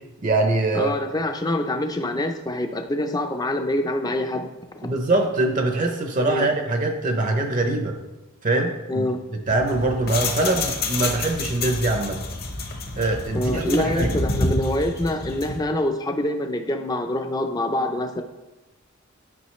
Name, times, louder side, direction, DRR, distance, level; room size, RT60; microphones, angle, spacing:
voice 1, 0.2-0.9 4.8-8.0 8.4-9.1 9.5-12.2 13.0-14.1, right 2 dB, 35° right, 4 dB, 0.6 m, -23 dB
voice 2, 0.7-4.5 4.8-4.9 6.3-6.5 8.9-9.2 13.3-18.2, left 1 dB, 20° left, 6 dB, 0.5 m, -25 dB
sound 1, 9.5-15.6, left 2 dB, 45° left, 0.9 m, -29 dB
9.4 x 5.5 x 3.1 m, 1.1 s
head